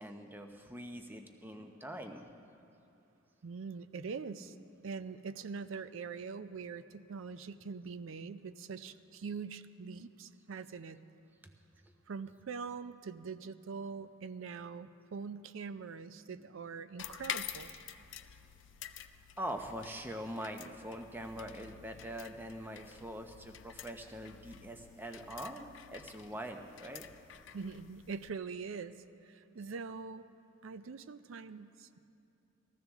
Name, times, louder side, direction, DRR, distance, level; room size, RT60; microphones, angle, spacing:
voice 1, 0.0-2.3 4.4-4.5 16.3-16.4 19.4-27.1, right 1 dB, 10° right, 5 dB, 0.6 m, -43 dB
voice 2, 3.4-4.5 4.8-11.0 12.1-17.7 27.5-30.3 30.6-32.0, right 5 dB, 75° right, 13 dB, 0.5 m, -43 dB
sound 1, 17.0-28.3, left 9 dB, 60° left, 0.4 m, -48 dB
20.5 x 14.0 x 3.5 m, 2.7 s
head